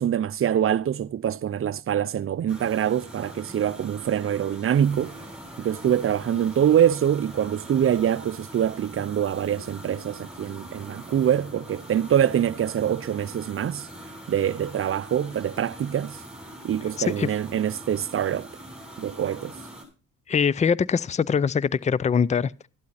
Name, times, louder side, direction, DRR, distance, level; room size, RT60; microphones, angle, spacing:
voice 1, 0.0-5.2 5.6-13.9 14.3-16.2 16.6-18.5 19.0-19.6, right 9 dB, 45° right, 0.6 m, -24 dB
sound 1, 2.5-19.8, right 1 dB, 5° right, 7.3 m, -43 dB
voice 2, 17.0-17.3 20.3-22.7, left 6 dB, 25° left, 0.5 m, -23 dB
13.0 x 11.5 x 4.2 m
cardioid pair, 90°, 30 cm